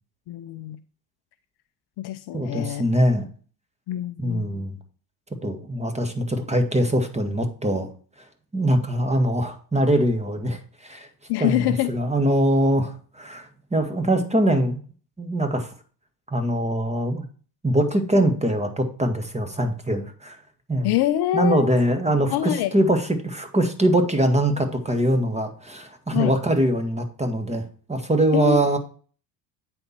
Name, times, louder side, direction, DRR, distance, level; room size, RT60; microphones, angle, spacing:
voice 1, 0.3-0.8 2.0-2.8 3.9-4.6 11.3-11.9 20.8-21.7 22.3-22.8 26.1-26.3 28.3-28.6, left 14 dB, 50° left, 11 dB, 0.6 m, -25 dB
voice 2, 2.3-3.2 4.2-4.8 5.4-7.9 8.5-10.6 10.8-11.1 11.4-14.8 15.2-15.7 16.3-17.2 17.6-20.4 20.7-20.9 21.3-27.6 27.9-28.8, right 1 dB, 15° right, 7 dB, 1.6 m, -22 dB
8.9 x 4.4 x 4.3 m, 0.40 s
hypercardioid pair, 70°, 50 cm